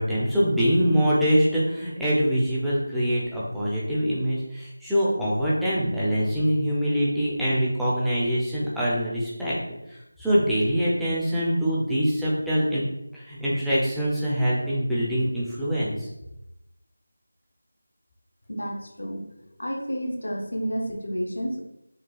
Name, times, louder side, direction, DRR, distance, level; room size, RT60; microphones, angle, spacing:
voice 1, 0.0-9.6 9.9-12.8 13.1-16.1, equal, ahead, -10 dB, 0.4 m, -24 dB
voice 2, 18.5-19.3 19.6-21.6, equal, 65° left, 1 dB, 0.6 m, -30 dB
3.9 x 2.3 x 2.2 m, 0.89 s
figure-of-eight pair, 165°, 0 cm